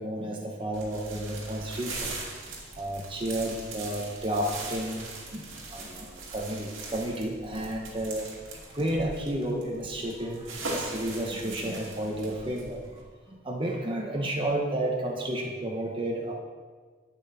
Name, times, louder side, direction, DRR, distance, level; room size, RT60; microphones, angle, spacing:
voice 1, 0.0-2.2 2.8-5.1 5.3-8.3 8.7-12.8 13.3-16.3, right 1 dB, 25° right, -1 dB, 0.9 m, -31 dB
sound 1, 0.7-13.0, right 2 dB, 75° right, 2.3 m, -40 dB
11.5 x 8.9 x 4.2 m, 1.5 s
head